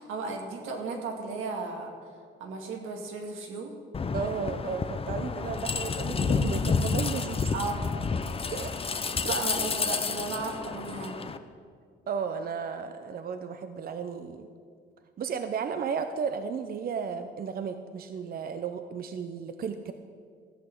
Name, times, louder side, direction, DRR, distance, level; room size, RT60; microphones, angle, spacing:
voice 1, 0.0-1.9 2.4-3.7 7.5-8.0 9.3-11.1, right 3 dB, 85° right, 2 dB, 2.0 m, -35 dB
sound 1, 3.9-11.4, left 4 dB, 30° left, 0.7 m, -30 dB
voice 2, 4.1-7.5 8.5-8.7 9.2-9.3 12.1-14.5 15.2-19.9, right 6 dB, 50° right, 8 dB, 0.7 m, -34 dB
14.0 x 6.0 x 8.4 m, 2.1 s
cardioid pair, 90°, 20 cm